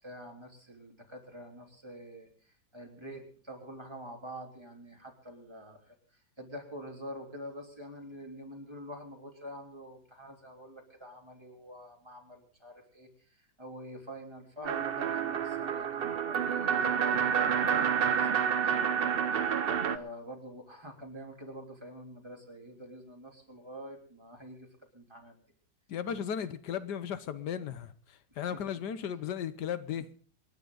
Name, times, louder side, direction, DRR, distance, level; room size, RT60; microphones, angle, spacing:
voice 1, 0.0-2.3 2.7-5.9 6.4-13.1 13.4-24.7 24.9-25.4 28.5-28.6, equal, 15° right, 3.2 m, -46 dB
sound 1, 14.6-20.0, right 7 dB, 50° right, 0.7 m, -29 dB
voice 2, 25.9-27.9 28.4-30.1, left 8 dB, 85° left, 1.5 m, -35 dB
27.5 x 10.5 x 3.9 m
omnidirectional pair, 1.8 m